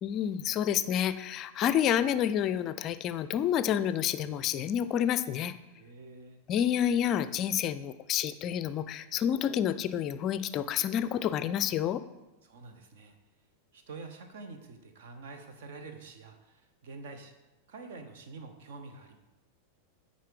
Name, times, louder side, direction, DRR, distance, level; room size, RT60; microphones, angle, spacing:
voice 1, 0.0-5.5 6.5-12.0, left 10 dB, 35° left, 13 dB, 0.4 m, -29 dB
voice 2, 5.7-6.4 12.4-13.2 13.7-17.3 17.7-19.2, right 3 dB, 55° right, 6 dB, 1.0 m, -47 dB
9.2 x 4.1 x 4.8 m, 1.1 s
figure-of-eight pair, 90°, 0 cm